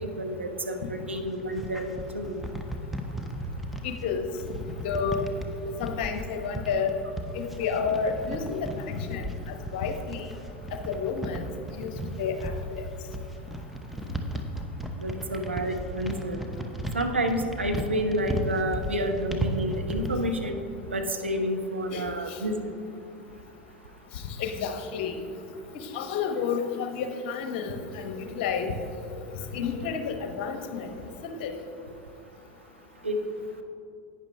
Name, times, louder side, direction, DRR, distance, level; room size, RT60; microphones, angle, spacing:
voice 1, 0.0-1.9 2.1-2.4 15.0-16.4 16.9-20.6 20.9-22.7 33.0-33.2, equal, 85° right, 4 dB, 0.8 m, -29 dB
sound 1, 1.2-20.3, right 1 dB, ahead, 0.9 m, -35 dB
voice 2, 3.8-4.3 4.8-5.3 5.8-7.0 7.3-10.3 10.9-11.4 11.8-11.9 12.2-12.8 21.9-22.4 24.4-25.2 25.9-28.7 29.5-30.9 31.2-31.5, left 6 dB, 55° left, 6 dB, 1.0 m, -30 dB
11.5 x 9.2 x 3.3 m, 2.5 s
figure-of-eight pair, 80°, 6 cm